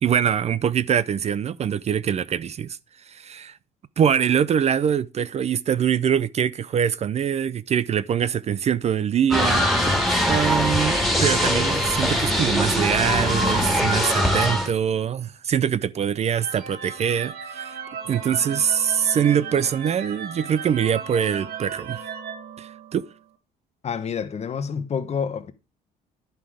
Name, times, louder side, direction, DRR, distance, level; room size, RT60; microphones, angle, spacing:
voice 1, 0.0-2.8 3.1-3.5 4.0-17.8 18.1-22.1 22.6-23.0, right 8 dB, 40° right, 0.5 m, -23 dB
sound 1, 9.3-14.7, equal, ahead, 2.4 m, -22 dB
sound 2, 16.2-23.2, right 7 dB, 65° right, 2.1 m, -36 dB
voice 2, 23.8-25.5, left 6 dB, 40° left, 1.1 m, -28 dB
10.5 x 5.7 x 4.8 m
cardioid pair, 110°, 17 cm